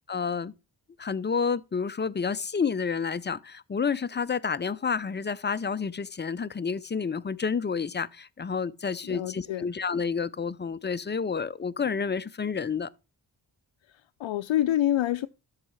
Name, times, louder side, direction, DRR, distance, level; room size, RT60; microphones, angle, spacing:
voice 1, 0.1-0.5 1.0-12.9, left 5 dB, 25° left, 0.4 m, -29 dB
voice 2, 9.1-9.7 14.2-15.3, left 12 dB, 85° left, 0.5 m, -26 dB
13.0 x 4.8 x 3.1 m
wide cardioid pair, 105°, 45 cm